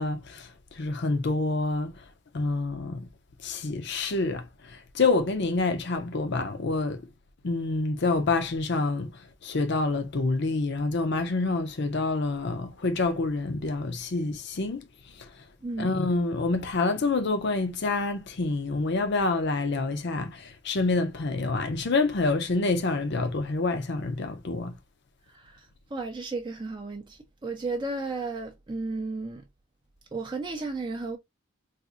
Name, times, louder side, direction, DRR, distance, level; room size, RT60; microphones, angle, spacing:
voice 1, 0.0-2.0 2.3-3.1 3.4-7.0 7.4-9.1 9.4-14.9 15.2-15.3 15.8-24.8, left 3 dB, 55° left, 0.6 m, -27 dB
voice 2, 15.6-15.9 25.3-29.4 30.1-31.2, right 3 dB, 25° right, 0.4 m, -34 dB
4.1 x 2.5 x 2.4 m
head